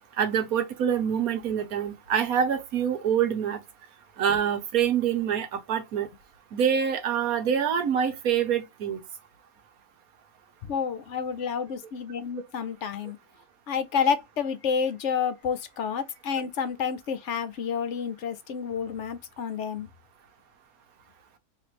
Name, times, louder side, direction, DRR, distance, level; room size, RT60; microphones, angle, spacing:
voice 1, 0.2-3.6 4.2-6.1 6.5-9.0, right 8 dB, 85° right, 1.4 m, -25 dB
voice 2, 10.6-13.2 13.7-19.9, left 6 dB, 60° left, 0.9 m, -29 dB
3.2 x 3.2 x 4.2 m
omnidirectional pair, 1.5 m